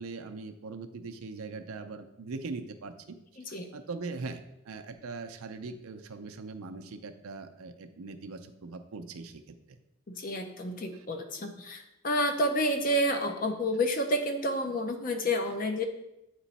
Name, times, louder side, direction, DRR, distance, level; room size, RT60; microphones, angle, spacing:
voice 1, 0.0-3.2 3.5-9.6, right 4 dB, 85° right, 7 dB, 0.5 m, -41 dB
voice 2, 3.4-3.7 10.1-15.8, equal, 40° left, 5 dB, 0.6 m, -29 dB
8.1 x 3.0 x 4.1 m, 0.90 s
head